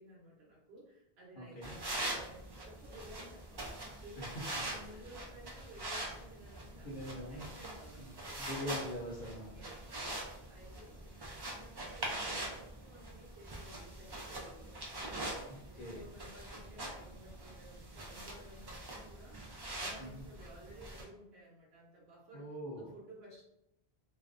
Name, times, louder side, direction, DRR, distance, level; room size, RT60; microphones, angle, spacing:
voice 1, 0.0-3.6 4.0-8.4 9.4-11.1 11.5-15.3 15.7-19.4 19.7-23.4, equal, 85° right, -4 dB, 0.9 m, -55 dB
voice 2, 1.4-1.8 4.2-4.3 6.8-7.5 8.0-8.1 8.4-9.5 15.5-16.0 20.0-20.2 22.3-22.9, left 1 dB, 60° left, -4 dB, 0.7 m, -43 dB
sound 1, 1.6-21.0, right 1 dB, 40° right, 0.3 m, -43 dB
2.4 x 2.1 x 2.4 m, 0.80 s
omnidirectional pair, 1.0 m